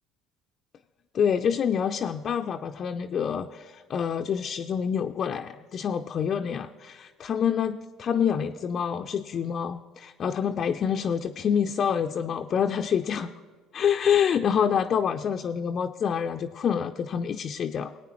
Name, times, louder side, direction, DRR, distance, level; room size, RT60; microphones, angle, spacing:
voice 1, 1.1-13.3 13.7-17.9, left 7 dB, 45° left, 5 dB, 0.4 m, -27 dB
19.5 x 9.0 x 3.0 m, 1.4 s
hypercardioid pair, 60°, 0 cm